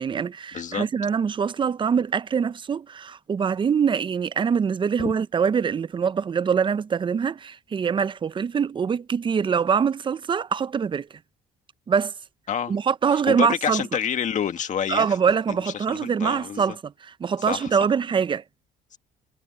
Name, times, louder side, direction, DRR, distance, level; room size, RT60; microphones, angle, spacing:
voice 1, 0.0-11.1 11.9-12.1 12.7-13.8 14.9-18.4, right 6 dB, 30° right, 0.6 m, -24 dB
voice 2, 0.5-0.9 5.0-5.1 12.5-12.7 13.1-15.2 15.5-16.8 17.5-17.7, left 8 dB, 45° left, 1.8 m, -28 dB
cardioid pair, 110°, 17 cm